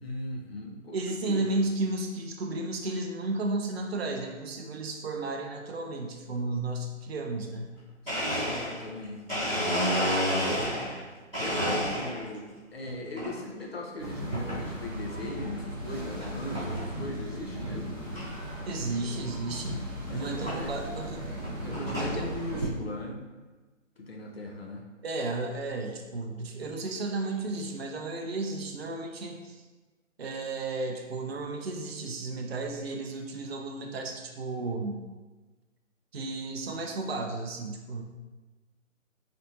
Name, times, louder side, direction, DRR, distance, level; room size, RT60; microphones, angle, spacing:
voice 1, 0.0-1.7 8.0-9.9 10.5-11.0 11.4-18.0 20.1-20.8 21.6-23.2 24.0-24.8, left 1 dB, 50° left, 0 dB, 0.7 m, -39 dB
voice 2, 0.9-7.7 18.7-19.8 20.1-21.3 21.9-22.3 25.0-29.6 30.2-35.0 36.1-38.0, right 2 dB, 50° right, 2 dB, 0.5 m, -33 dB
Domestic sounds home sounds, 7.7-7.8 8.1-11.0 11.3-12.4 12.8-13.3 14.3-14.6 15.2-15.3 16.2-16.3 16.5-16.9 17.3-17.4 17.6-17.7 18.1-18.2 19.6-19.7 20.5-20.6 21.2-22.2, equal, 5° left, 1.2 m, -30 dB
sound 1, 14.0-22.7, right 1 dB, 20° right, 0.7 m, -37 dB
4.1 x 3.3 x 2.8 m, 1.2 s
figure-of-eight pair, 160°, 40 cm